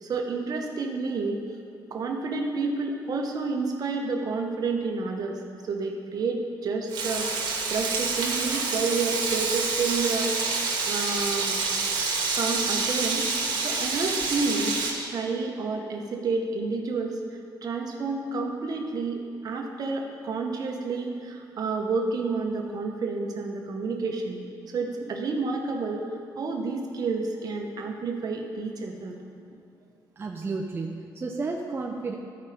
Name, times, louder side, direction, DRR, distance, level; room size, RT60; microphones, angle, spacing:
voice 1, 0.0-1.4 1.9-5.4 5.7-10.3 10.9-11.6 12.3-17.2 17.6-24.4 24.7-26.0 26.4-29.1, right 4 dB, 55° right, 2 dB, 1.0 m, -30 dB
Frying (food), 6.9-14.9, right 4 dB, 80° right, 1.6 m, -27 dB
voice 2, 30.2-32.2, right 3 dB, 30° right, 1 dB, 0.6 m, -32 dB
13.0 x 5.1 x 4.3 m, 2.5 s
cardioid pair, 105°, 8 cm